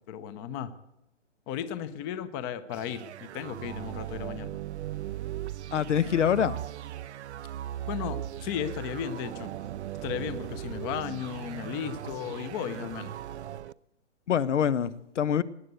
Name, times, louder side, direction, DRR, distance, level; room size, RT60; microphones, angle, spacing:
voice 1, 0.1-0.7 1.5-4.6 7.9-9.5 10.0-13.2, left 9 dB, 20° left, 13 dB, 0.7 m, -35 dB
sound 1, 2.7-13.7, right 12 dB, 70° right, 0.6 m, -38 dB
voice 2, 5.7-6.6 14.3-15.4, left 8 dB, 80° left, 17 dB, 1.1 m, -25 dB
19.5 x 9.3 x 8.0 m, 0.87 s
hypercardioid pair, 155°, 36 cm